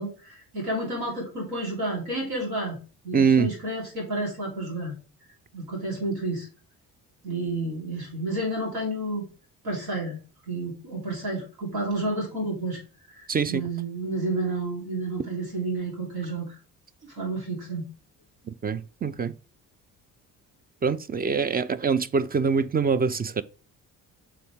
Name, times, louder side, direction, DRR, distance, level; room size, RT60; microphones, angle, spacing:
voice 1, 0.0-2.8 3.0-4.9 5.5-6.5 7.2-9.2 9.6-10.2 10.5-12.8 13.1-16.4 17.1-17.8, right 2 dB, 80° right, 3.3 m, -30 dB
voice 2, 3.1-3.5 13.3-13.7 18.6-19.3 20.8-23.4, right 5 dB, 25° right, 0.4 m, -24 dB
6.4 x 4.1 x 3.6 m
supercardioid pair, 65°, 37 cm